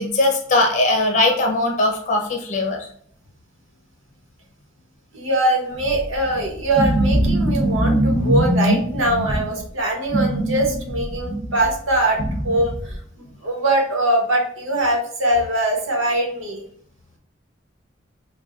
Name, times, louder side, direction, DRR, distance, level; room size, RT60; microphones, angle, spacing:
voice 1, 0.0-2.8, left 2 dB, 40° left, 2 dB, 0.9 m, -20 dB
voice 2, 5.1-12.2 12.4-13.0 13.4-16.6, right 1 dB, 85° right, 0 dB, 1.1 m, -22 dB
sound 1, 5.7-9.6 10.0-13.0, right 1 dB, 15° right, 1.0 m, -22 dB
5.7 x 2.3 x 2.5 m, 0.62 s
head